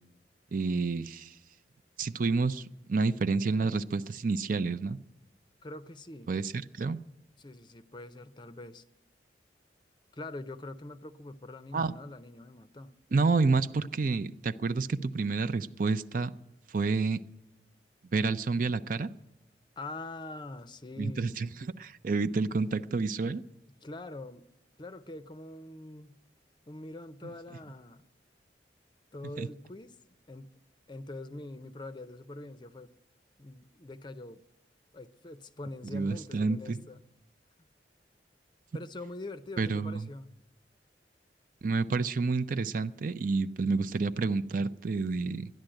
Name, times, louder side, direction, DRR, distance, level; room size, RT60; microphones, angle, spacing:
voice 1, 0.5-1.3 2.0-5.0 6.3-7.0 11.7-11.9 13.1-16.3 16.7-17.2 18.1-19.1 21.0-21.5 21.8-23.4 29.4-29.5 35.9-36.8 39.6-40.1 41.6-45.5, right 4 dB, 50° right, 0.5 m, -29 dB
voice 2, 5.6-6.3 7.4-8.8 10.1-13.0 19.8-21.4 23.8-24.4 24.8-26.2 26.7-28.0 29.1-30.0 30.3-30.5 30.9-32.9 33.4-34.4 34.9-37.0 37.6-37.7 38.7-40.3, left 2 dB, 25° left, 0.5 m, -44 dB
13.0 x 10.5 x 8.9 m
head